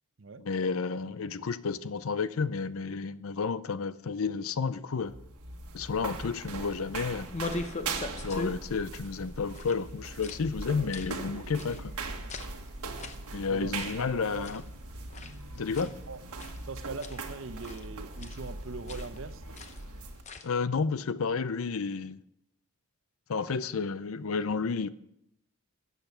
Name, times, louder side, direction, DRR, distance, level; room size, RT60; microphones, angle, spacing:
voice 1, 0.4-5.1 5.7-7.3 8.2-11.9 13.3-14.6 15.6-15.9 20.4-22.2 23.3-24.9, left 5 dB, 70° left, 0.6 m, -31 dB
sound 1, 5.0-20.2, right 3 dB, 90° right, 1.5 m, -40 dB
sound 2, 6.4-20.6, left 3 dB, 30° left, 0.8 m, -43 dB
voice 2, 13.5-14.5 15.8-16.2 16.7-19.4, right 4 dB, 60° right, 0.7 m, -41 dB
13.5 x 8.3 x 5.7 m
head